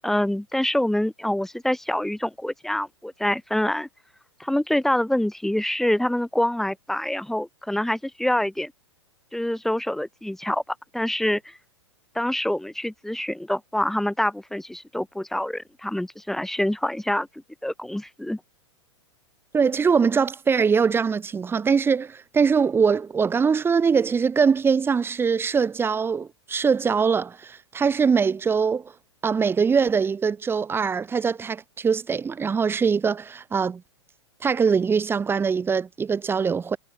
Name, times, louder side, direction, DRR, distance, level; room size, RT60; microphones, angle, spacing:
voice 1, 0.0-3.9 4.4-8.7 9.3-10.6 10.9-11.6 12.1-17.3 17.6-18.4, left 1 dB, ahead, 3.1 m, -26 dB
voice 2, 19.5-28.9 29.2-33.8 34.4-36.8, right 6 dB, 15° right, 1.9 m, -22 dB
figure-of-eight pair, 105°, 16 cm